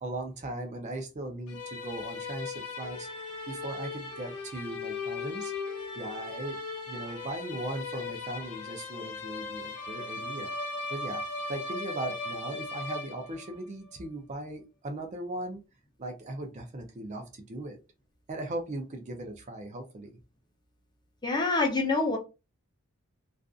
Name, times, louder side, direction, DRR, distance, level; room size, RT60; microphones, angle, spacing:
voice 1, 0.0-3.1 3.5-5.5 6.0-6.6 6.9-10.5 10.9-11.2 11.5-15.6 16.0-17.8 18.3-20.2, right 1 dB, 35° right, 0.5 m, -38 dB
sound 1, 1.5-13.6, left 3 dB, 85° left, 0.8 m, -38 dB
voice 2, 21.2-22.2, left 3 dB, 20° left, 0.6 m, -26 dB
2.5 x 2.4 x 2.3 m
head